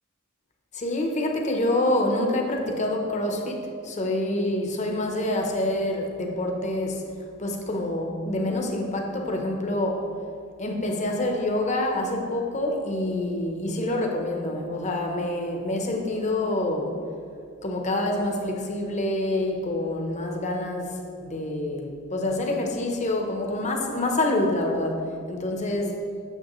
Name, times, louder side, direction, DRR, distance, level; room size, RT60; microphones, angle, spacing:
voice 1, 0.7-7.1 7.4-10.1 10.6-16.9 17.6-26.0, left 1 dB, 35° left, 2 dB, 0.8 m, -27 dB
8.9 x 6.7 x 3.1 m, 2.4 s
head